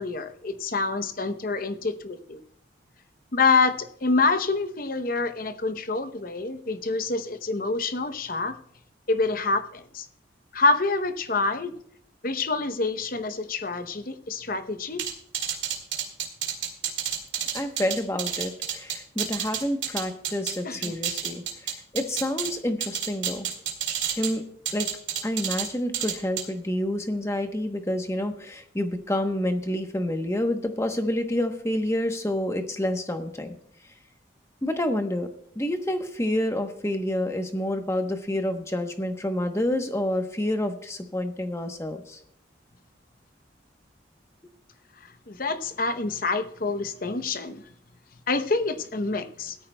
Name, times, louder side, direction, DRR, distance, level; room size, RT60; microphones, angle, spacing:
voice 1, 0.0-2.4 3.3-8.6 9.1-10.1 10.5-11.7 12.2-15.0 20.6-21.0 45.3-47.6 48.3-49.6, left 3 dB, 45° left, 11 dB, 0.7 m, -26 dB
sound 1, 15.0-20.6 20.8-22.5 22.8-24.3 24.7-25.7 25.9-26.4, right 9 dB, 70° right, 2.1 m, -29 dB
voice 2, 17.5-23.5 24.2-24.4 24.7-24.9 25.2-33.6 34.6-35.3 35.6-42.2, left 1 dB, 15° left, 6 dB, 0.9 m, -28 dB
17.0 x 13.5 x 2.2 m, 0.67 s
head